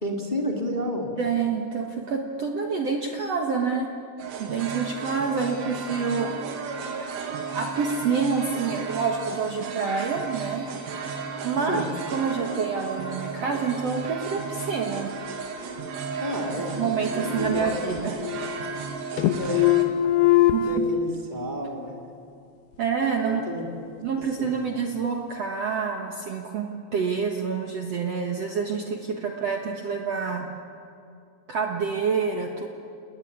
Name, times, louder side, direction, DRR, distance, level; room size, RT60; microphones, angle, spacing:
voice 1, 0.0-1.1 11.6-11.8 16.2-18.3 19.4-19.6 20.5-22.0 23.2-23.6 24.4-24.6, equal, 15° left, 1 dB, 1.5 m, -31 dB
voice 2, 1.2-3.9 4.4-6.3 7.5-10.7 11.4-15.1 16.7-18.1 20.5-20.7 22.8-23.4 24.0-30.5 31.5-32.7, right 5 dB, 85° right, 2 dB, 1.4 m, -27 dB
sound 1, 4.2-19.8, right 5 dB, 65° right, 4.1 m, -34 dB
sound 2, 16.7-17.7 18.0-18.9 19.2-20.8, left 13 dB, 75° left, 2.5 m, -23 dB
29.5 x 19.5 x 9.5 m, 2.6 s
omnidirectional pair, 5.4 m